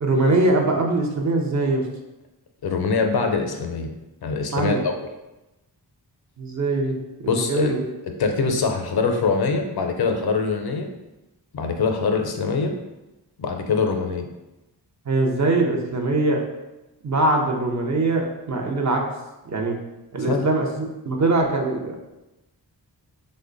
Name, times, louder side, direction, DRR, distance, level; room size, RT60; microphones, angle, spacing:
voice 1, 0.0-1.8 4.5-4.8 6.4-7.0 7.2-7.8 15.1-16.4 17.0-19.0 19.5-19.8 20.1-21.9, right 2 dB, 40° right, 1 dB, 0.6 m, -22 dB
voice 2, 2.6-3.9 4.2-4.9 7.3-7.7 8.2-10.9 11.5-12.7 13.4-14.3 20.3-20.5, left 4 dB, 60° left, 4 dB, 0.5 m, -23 dB
3.2 x 2.1 x 3.7 m, 1.0 s
wide cardioid pair, 65°, 42 cm